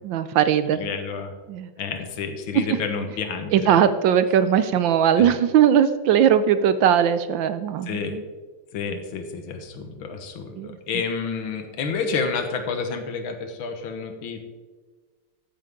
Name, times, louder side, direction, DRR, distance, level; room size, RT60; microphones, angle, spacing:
voice 1, 0.0-0.9 1.5-1.7 3.5-8.2 10.6-10.8, right 9 dB, 70° right, 12 dB, 1.2 m, -19 dB
voice 2, 0.7-1.3 1.8-3.8 5.2-5.4 7.8-8.2 8.7-14.4, left 5 dB, 70° left, 6 dB, 2.1 m, -30 dB
14.5 x 11.0 x 3.7 m, 1.3 s
omnidirectional pair, 2.4 m